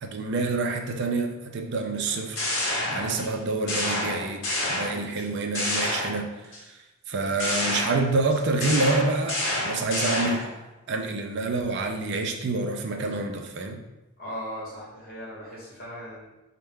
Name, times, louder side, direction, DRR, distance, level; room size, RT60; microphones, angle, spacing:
voice 1, 0.0-2.4 2.9-6.3 7.1-10.5 10.9-13.8, right 3 dB, 50° right, 4 dB, 0.4 m, -27 dB
sound 1, 2.1-3.4 3.7-5.2 5.6-6.6 7.4-10.6, left 1 dB, 60° left, 0.8 m, -29 dB
voice 2, 14.2-16.3, equal, 40° left, -6 dB, 1.2 m, -38 dB
4.3 x 2.2 x 3.5 m, 1.0 s
head